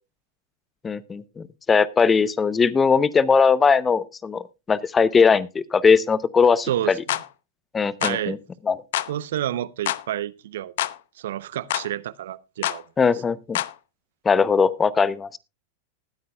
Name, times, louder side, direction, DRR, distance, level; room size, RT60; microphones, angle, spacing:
voice 1, 0.8-4.4 4.7-6.9 7.7-8.4 8.7-8.8 13.0-13.6 14.2-15.4, left 5 dB, 20° left, 0.7 m, -20 dB
sound 1, 7.1-7.3 8.0-8.2 8.9-9.1 9.9-10.0 10.8-11.0 11.7-11.9 12.6-12.8 13.6-13.7, left 13 dB, 70° left, 0.6 m, -26 dB
voice 2, 8.0-8.4 9.1-10.7 11.2-12.8, right 12 dB, 70° right, 0.6 m, -29 dB
20.0 x 9.4 x 2.3 m
hypercardioid pair, 105°, 0 cm